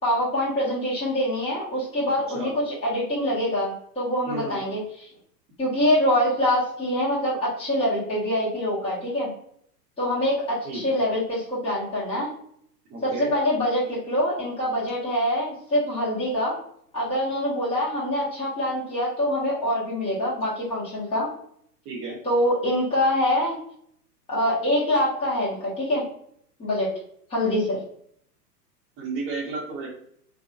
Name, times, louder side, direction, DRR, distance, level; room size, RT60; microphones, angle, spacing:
voice 1, 0.0-5.1 5.6-9.3 10.0-12.3 13.0-16.6 16.9-21.3 22.2-23.6 24.3-26.0 26.6-26.9 27.3-27.8, left 1 dB, 10° left, -9 dB, 1.2 m, -25 dB
voice 2, 4.3-4.6 10.6-11.0 12.9-13.3 21.8-22.2 29.0-29.9, right 3 dB, 25° right, -2 dB, 1.1 m, -32 dB
3.8 x 2.4 x 2.4 m, 0.66 s
figure-of-eight pair, 105°, 49 cm